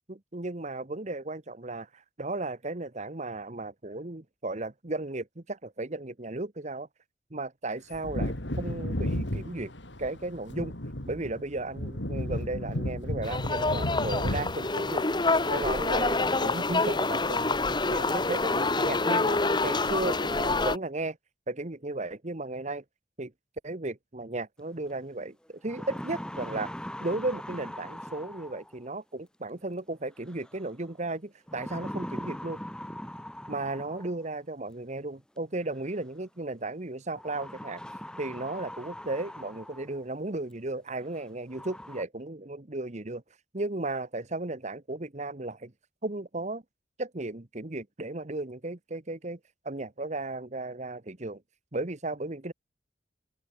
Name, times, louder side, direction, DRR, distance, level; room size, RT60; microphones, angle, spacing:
voice 1, 0.1-6.9 7.3-9.7 10.0-10.7 11.1-15.1 15.5-17.6 17.9-21.2 21.5-22.8 23.2-23.3 23.6-26.7 27.0-32.6 33.5-37.8 38.2-43.2 43.5-45.7 46.0-46.6 47.0-49.4 49.6-51.4 51.7-52.5, right 2 dB, 40° right, 1.2 m, -35 dB
Wind / Thunder, 7.9-16.2 16.5-16.6, left 1 dB, 75° left, 4.2 m, -34 dB
sound 1, 13.2-20.8, left 3 dB, 25° left, 1.4 m, -27 dB
sound 2, 24.9-25.0 25.5-28.9 30.3-30.7 31.5-34.3 35.5-35.6 37.1-40.0 40.5-40.6 41.1-41.2 41.5-42.0, equal, 5° left, 3.7 m, -41 dB
open air
head